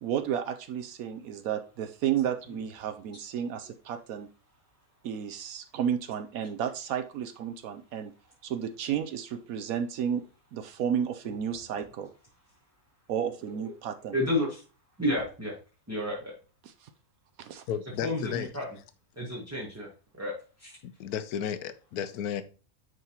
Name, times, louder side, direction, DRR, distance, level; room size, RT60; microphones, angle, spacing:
voice 1, 0.0-4.3 5.0-8.1 8.4-10.2 10.5-12.1 13.1-14.2 16.6-16.9 17.4-17.6, right 8 dB, 70° right, 1.0 m, -32 dB
voice 2, 14.1-14.6 15.0-15.5 15.9-16.3 18.0-18.7 19.2-19.9 20.2-20.8, left 1 dB, 10° right, 1.0 m, -31 dB
voice 3, 17.7-18.5 20.8-22.4, left 9 dB, 80° left, 1.1 m, -33 dB
9.3 x 3.8 x 2.9 m
omnidirectional pair, 1.6 m